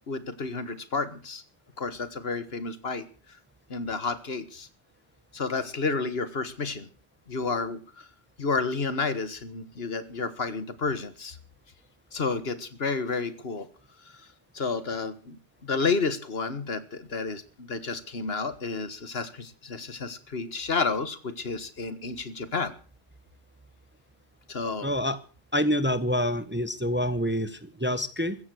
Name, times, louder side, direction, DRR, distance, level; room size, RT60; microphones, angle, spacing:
voice 1, 0.1-1.4 1.8-3.0 3.7-4.7 5.3-6.9 7.3-8.1 8.4-11.4 12.1-13.7 14.5-22.7 24.5-24.9, left 4 dB, 65° left, 13 dB, 1.8 m, -31 dB
voice 2, 24.8-25.2 25.5-28.4, equal, 10° right, 13 dB, 1.0 m, -27 dB
15.5 x 14.5 x 6.4 m, 0.38 s
omnidirectional pair, 1.1 m